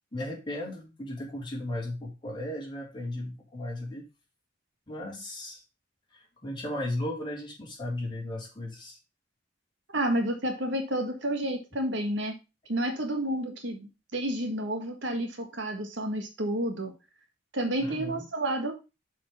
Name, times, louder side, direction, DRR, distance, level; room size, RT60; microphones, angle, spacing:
voice 1, 0.1-4.0 4.9-5.6 6.1-9.0 17.8-18.2, left 1 dB, 25° left, -4 dB, 3.4 m, -36 dB
voice 2, 9.9-12.3 12.7-16.9 17.5-18.7, right 1 dB, 70° right, 4 dB, 1.7 m, -30 dB
6.1 x 5.1 x 5.4 m, 0.28 s
head